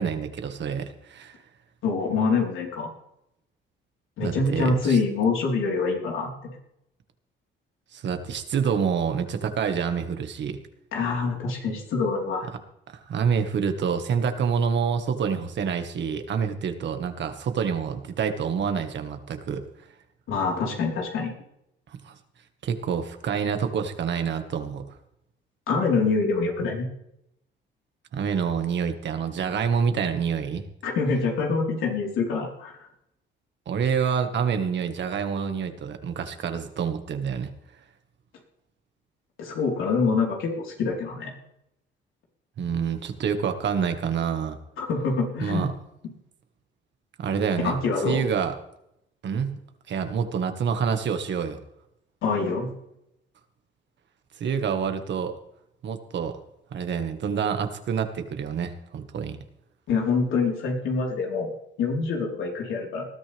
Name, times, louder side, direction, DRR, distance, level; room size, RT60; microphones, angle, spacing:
voice 1, 0.0-1.4 4.2-5.0 7.9-10.6 12.9-19.6 22.0-22.1 22.6-24.9 28.1-30.6 33.7-37.5 42.6-44.6 45.4-45.7 47.2-47.8 48.0-48.5 49.2-49.6 49.9-51.6 54.4-55.3 55.8-56.4 56.7-59.4, right 6 dB, 65° right, 7 dB, 1.8 m, -27 dB
voice 2, 1.8-2.9 4.2-6.3 10.9-12.5 20.3-21.3 25.7-26.9 30.8-32.7 39.4-41.3 44.8-45.7 47.6-48.2 52.2-52.7 59.9-61.5 61.8-63.1, left 4 dB, 80° left, -1 dB, 4.3 m, -25 dB
20.0 x 12.5 x 3.5 m, 0.80 s
cardioid pair, 90°, 20 cm